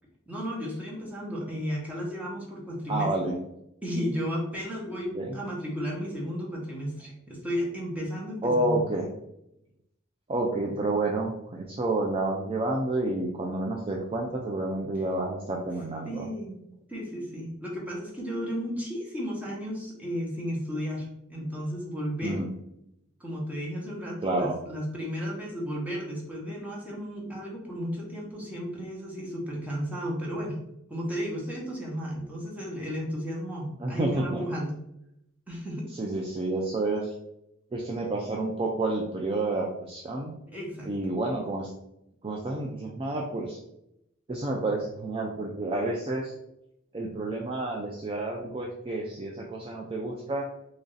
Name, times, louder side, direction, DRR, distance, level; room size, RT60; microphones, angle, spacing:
voice 1, 0.3-3.4 3.8-8.8 16.0-16.6 16.9-22.4 23.2-30.6 30.9-34.7 35.5-35.9 40.5-40.9, equal, 10° right, -4 dB, 1.0 m, -33 dB
voice 2, 2.9-3.3 5.1-5.4 8.4-9.1 10.3-16.3 22.2-22.5 24.2-24.5 33.8-34.4 35.9-37.1 37.7-40.3 40.8-41.7 42.2-43.6 44.3-46.3 46.9-50.5, right 2 dB, 25° right, 0 dB, 0.4 m, -29 dB
3.1 x 2.6 x 3.9 m, 0.81 s
head